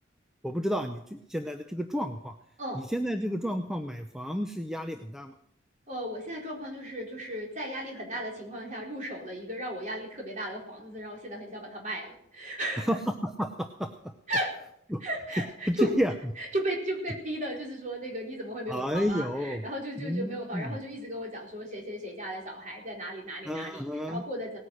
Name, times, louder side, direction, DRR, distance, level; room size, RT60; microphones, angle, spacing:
voice 1, 0.4-2.3 2.7-5.4 12.9-13.9 14.9-15.0 15.7-16.1 18.7-19.7 20.0-20.8 23.4-24.2, equal, 5° right, 6 dB, 0.6 m, -31 dB
voice 2, 5.9-12.9 14.3-14.5 15.0-15.9 16.4-24.6, equal, 40° right, -1 dB, 4.3 m, -35 dB
18.5 x 9.7 x 6.4 m, 0.71 s
head